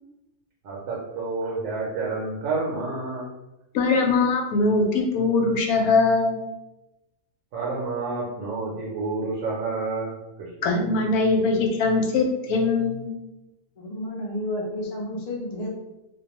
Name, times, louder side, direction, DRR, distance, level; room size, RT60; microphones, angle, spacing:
voice 1, 0.6-3.3 7.5-10.7, right 3 dB, 70° right, -4 dB, 1.0 m, -29 dB
voice 2, 3.7-6.4 10.6-13.1, left 3 dB, 80° left, 2 dB, 1.0 m, -21 dB
voice 3, 13.8-15.7, left 1 dB, 55° left, -2 dB, 0.4 m, -31 dB
2.4 x 2.2 x 2.9 m, 0.97 s
omnidirectional pair, 1.5 m